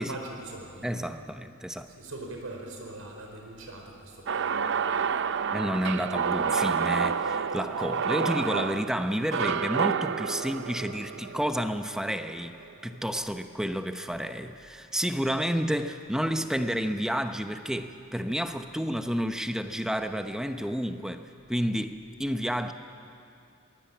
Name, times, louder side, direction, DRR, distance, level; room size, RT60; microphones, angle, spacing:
voice 1, 0.0-0.9 1.9-5.3, right 2 dB, 85° right, 2 dB, 4.8 m, -42 dB
voice 2, 0.8-1.9 5.5-22.7, equal, 5° right, 7 dB, 0.9 m, -30 dB
sound 1, 4.3-12.4, right 6 dB, 60° right, 0.6 m, -29 dB
23.5 x 19.5 x 8.7 m, 2.5 s
head